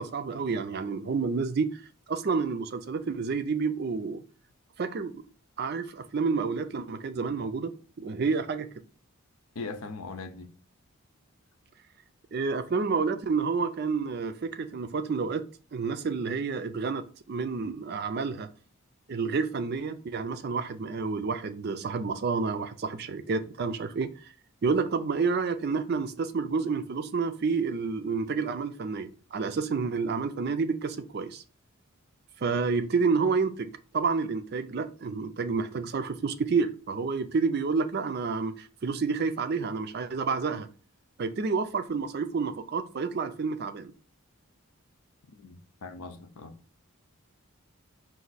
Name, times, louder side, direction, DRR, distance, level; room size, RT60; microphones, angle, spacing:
voice 1, 0.0-1.8 2.1-4.2 4.8-5.2 5.6-7.7 8.0-8.7 12.3-15.4 15.7-18.5 19.1-24.3 24.6-31.4 32.4-40.7 41.2-43.9, right 4 dB, 45° right, 0.4 m, -29 dB
voice 2, 9.5-10.5 45.3-46.5, left 3 dB, 80° left, 0.6 m, -40 dB
5.1 x 2.6 x 4.0 m
head